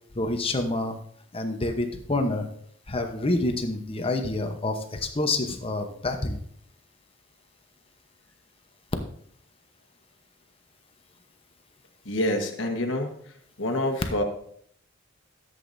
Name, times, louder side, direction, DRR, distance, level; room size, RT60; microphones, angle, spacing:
voice 1, 0.1-1.0 1.3-2.5 2.9-6.4, left 2 dB, 30° left, 5 dB, 0.9 m, -27 dB
voice 2, 12.0-13.1 13.6-14.2, left 1 dB, 65° left, 3 dB, 1.4 m, -27 dB
13.5 x 8.0 x 2.7 m, 0.65 s
head